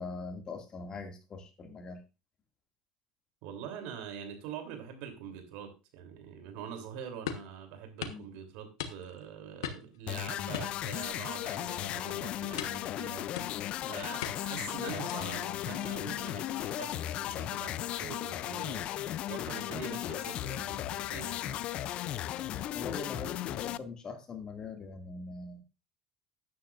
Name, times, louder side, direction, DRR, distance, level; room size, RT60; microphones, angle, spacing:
voice 1, 0.0-2.0 8.0-8.2 22.7-25.6, left 3 dB, 35° left, 4 dB, 2.2 m, -42 dB
voice 2, 3.4-13.2 13.9-18.8 19.3-21.6, right 8 dB, 70° right, 5 dB, 3.1 m, -44 dB
sound 1, 7.3-7.5 8.0-8.2 8.8-9.2 9.6-10.0 10.5-11.3 11.6-11.9 12.6-12.9 13.4-13.8 14.2-14.6 15.1-15.4, left 9 dB, 90° left, 1.2 m, -39 dB
sound 2, 10.1-23.8, left 13 dB, 55° left, 0.5 m, -36 dB
13.0 x 9.6 x 2.5 m, 0.28 s
supercardioid pair, 95°, 2 cm